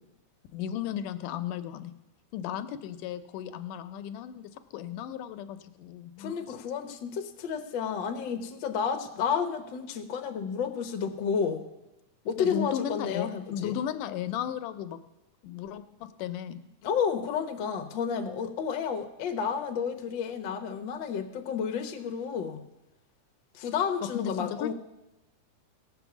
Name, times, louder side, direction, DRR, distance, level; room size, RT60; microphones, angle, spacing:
voice 1, 0.5-1.9 2.3-6.4 12.4-15.0 15.4-16.6 24.1-24.7, left 10 dB, 85° left, 10 dB, 2.3 m, -35 dB
voice 2, 6.2-11.6 12.2-13.7 16.8-22.6 23.5-24.7, left 6 dB, 65° left, 5 dB, 1.1 m, -31 dB
17.5 x 6.2 x 7.1 m, 0.97 s
omnidirectional pair, 3.6 m